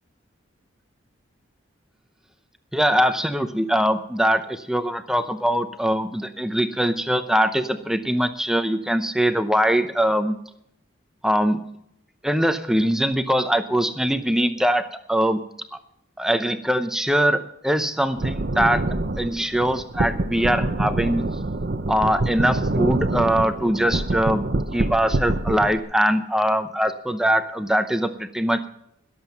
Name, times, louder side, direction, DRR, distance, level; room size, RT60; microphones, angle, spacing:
voice 1, 2.7-10.4 11.2-11.6 12.2-15.4 15.7-15.8 16.2-18.8 19.2-21.3 21.9-24.4 24.7-28.7, equal, 5° right, 8 dB, 0.7 m, -22 dB
sound 1, 18.2-25.8, right 2 dB, 50° right, 0.8 m, -26 dB
21.5 x 7.8 x 5.6 m, 0.73 s
head